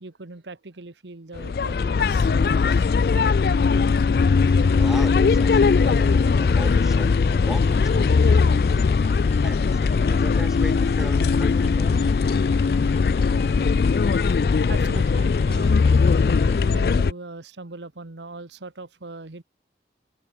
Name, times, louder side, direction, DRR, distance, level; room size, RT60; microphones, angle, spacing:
voice 1, 0.0-3.2 4.3-4.5 13.2-13.5 13.9-19.4, right 3 dB, 85° right, 1.3 m, -41 dB
sound 1, 1.4-17.1, left 5 dB, 60° left, 0.3 m, -19 dB
sound 2, 4.6-16.6, left 2 dB, 35° left, 0.8 m, -39 dB
voice 2, 4.8-9.1 9.4-12.1, equal, 5° right, 3.4 m, -38 dB
head